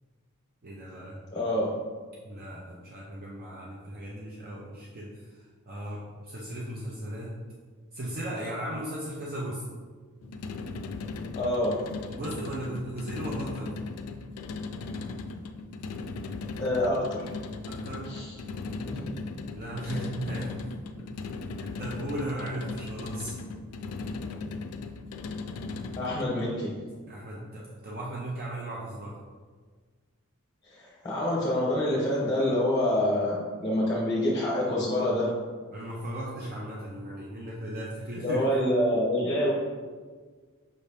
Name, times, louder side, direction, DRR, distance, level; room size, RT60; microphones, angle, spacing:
voice 1, 0.6-1.2 2.2-7.4 7.9-9.6 12.1-13.8 17.7-18.1 19.5-20.7 21.0-21.1 21.6-23.4 27.1-29.2 35.7-38.7, right 1 dB, 45° right, -4 dB, 0.6 m, -37 dB
voice 2, 1.3-1.7 11.3-11.8 16.6-17.3 18.1-18.3 18.9-19.0 19.9-20.0 26.0-26.7 30.7-35.3 38.2-39.5, left 1 dB, 15° left, -6 dB, 0.8 m, -26 dB
sound 1, 10.2-26.4, left 3 dB, 80° left, 0.3 m, -37 dB
5.3 x 2.8 x 3.3 m, 1.5 s
head